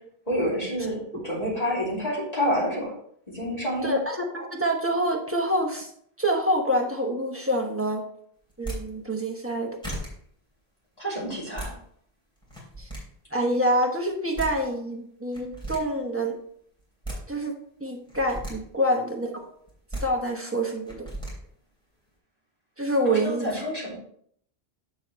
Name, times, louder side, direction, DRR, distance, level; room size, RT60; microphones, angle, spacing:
voice 1, 0.3-2.9 3.3-4.0 11.0-11.7 23.0-23.9, equal, 35° left, -6 dB, 2.8 m, -28 dB
voice 2, 3.8-5.9 6.2-8.0 8.6-9.8 12.8-12.9 13.3-16.4 17.3-19.5 20.0-21.1 22.8-23.5, right 1 dB, 15° right, 1 dB, 1.1 m, -26 dB
sound 1, 8.5-8.8 9.5-9.6 9.8-10.1 11.3-11.7 12.4-13.0 14.1-14.2 14.4-14.5 15.3-15.8 16.8-17.2 18.1-18.5 19.7-20.0 20.9-21.3, right 1 dB, 5° left, 3.2 m, -35 dB
7.6 x 6.8 x 3.1 m, 0.65 s
omnidirectional pair, 1.1 m